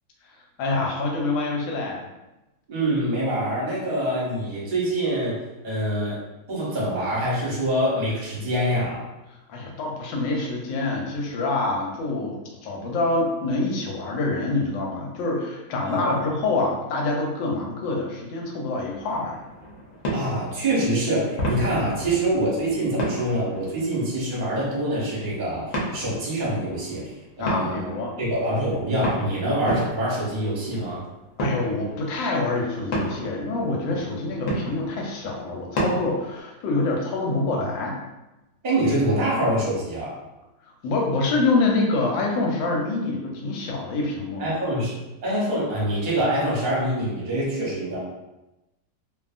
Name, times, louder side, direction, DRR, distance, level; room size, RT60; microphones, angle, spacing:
voice 1, 0.6-2.0 9.5-19.4 27.4-28.1 31.4-38.0 40.8-44.5, left 3 dB, 90° left, -1 dB, 1.3 m, -26 dB
voice 2, 2.7-5.3 5.6-6.2 6.5-9.0 15.8-16.2 20.1-27.1 27.4-27.8 28.2-31.0 38.6-40.2 44.4-45.0 45.2-48.0, right 1 dB, 40° right, -6 dB, 0.8 m, -25 dB
sound 1, 18.9-36.4, equal, 60° left, 0.9 m, -33 dB
2.7 x 2.6 x 2.4 m, 1.0 s
omnidirectional pair, 2.0 m